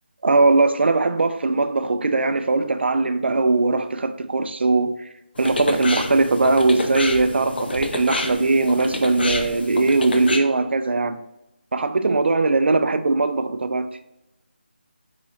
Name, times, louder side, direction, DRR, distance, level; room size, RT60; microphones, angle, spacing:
voice 1, 0.2-4.9 5.4-11.2 11.7-13.9, right 3 dB, 75° right, 0.3 m, -20 dB
sound 1, 5.4-10.4, left 2 dB, 60° left, 0.5 m, -28 dB
3.8 x 3.0 x 2.6 m
figure-of-eight pair, 170°, 6 cm